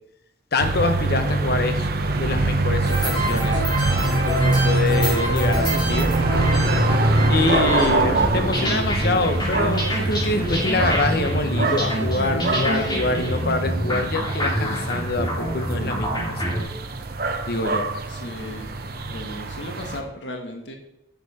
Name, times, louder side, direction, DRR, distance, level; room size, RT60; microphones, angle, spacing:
voice 1, 0.5-3.6 4.2-6.1 7.3-16.5 17.5-17.8, left 3 dB, 60° left, 7 dB, 1.0 m, -25 dB
sound 1, 0.6-20.0, right 2 dB, 60° right, 1.0 m, -24 dB
sound 2, 2.8-16.6, right 1 dB, 25° left, 3.7 m, -26 dB
voice 2, 18.1-18.7 19.1-20.8, left 1 dB, 90° left, 3 dB, 1.5 m, -36 dB
10.5 x 7.1 x 4.2 m, 0.86 s
head